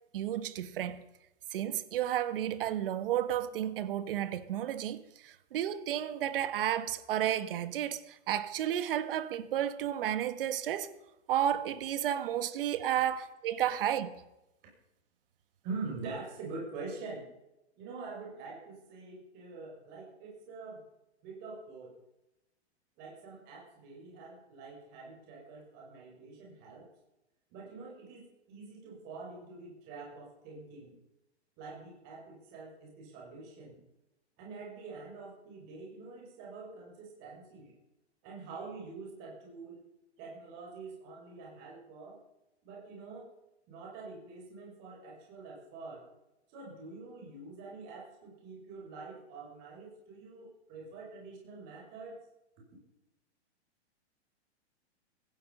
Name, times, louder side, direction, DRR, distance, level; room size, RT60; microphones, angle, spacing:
voice 1, 0.1-1.0 1.5-10.9 11.3-14.2, right 11 dB, 55° right, 1.6 m, -32 dB
voice 2, 15.6-17.3 17.8-20.8 21.2-22.0 23.0-26.9 27.5-31.0 31.6-33.8 34.4-37.8 38.2-39.8 40.2-42.2 42.6-43.3 43.7-46.0 46.5-52.1, right 4 dB, 30° right, 6.2 m, -45 dB
16.5 x 14.5 x 5.6 m
hypercardioid pair, 160°, 34 cm